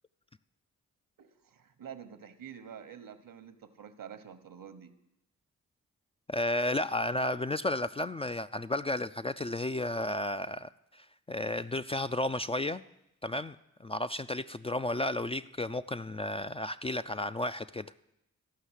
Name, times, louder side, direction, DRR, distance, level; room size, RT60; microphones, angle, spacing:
voice 1, 1.2-4.9, right 8 dB, 70° right, 11 dB, 1.0 m, -48 dB
voice 2, 6.3-12.8 13.2-17.9, left 1 dB, 15° left, 11 dB, 0.3 m, -33 dB
13.5 x 5.5 x 8.1 m, 0.84 s
supercardioid pair, 40°, 34 cm